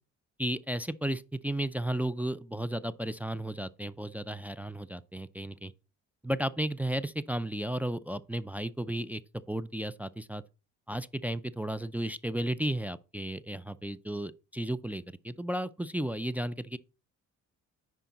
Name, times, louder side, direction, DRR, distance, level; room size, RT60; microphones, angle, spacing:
voice 1, 0.4-5.7 6.2-9.2 9.5-10.4 10.9-16.8, right 1 dB, 5° right, 0.4 m, -34 dB
10.0 x 4.7 x 4.0 m
cardioid pair, 90°, 30 cm